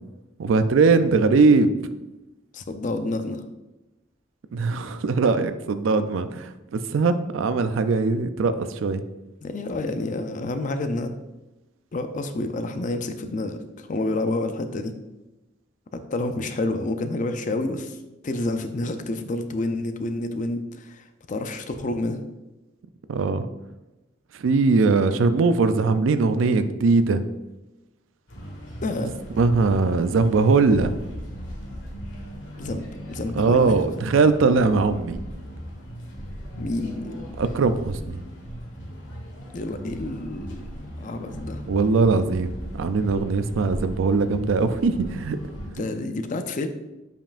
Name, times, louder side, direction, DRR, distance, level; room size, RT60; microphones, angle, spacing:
voice 1, 0.4-1.7 4.5-9.0 23.1-23.5 24.3-27.2 29.4-30.9 33.4-35.2 37.4-38.2 41.6-45.4 45.8-45.9, right 4 dB, 80° right, 11 dB, 0.4 m, -21 dB
voice 2, 2.5-3.4 9.4-11.1 11.9-14.9 15.9-18.0 18.2-22.2 28.8-29.1 32.6-32.8 33.1-33.7 36.6-37.4 39.5-40.7 41.0-41.6 45.7-46.7, left 2 dB, 40° left, 8 dB, 0.5 m, -29 dB
sound 1, 28.3-45.7, equal, 70° left, 1.5 m, -37 dB
7.4 x 5.3 x 2.5 m, 1.0 s
head